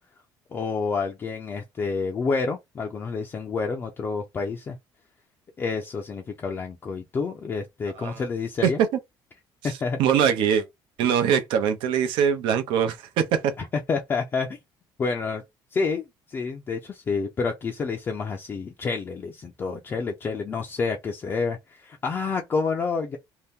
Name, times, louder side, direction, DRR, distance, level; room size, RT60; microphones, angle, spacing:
voice 1, 0.5-4.8 5.6-8.8 9.6-10.0 13.6-14.6 15.0-15.4 15.7-23.2, left 4 dB, 25° left, 0.4 m, -29 dB
voice 2, 10.0-10.6 11.0-13.5, right 8 dB, 80° right, 0.7 m, -22 dB
2.8 x 2.1 x 3.4 m
cardioid pair, 155°, 8 cm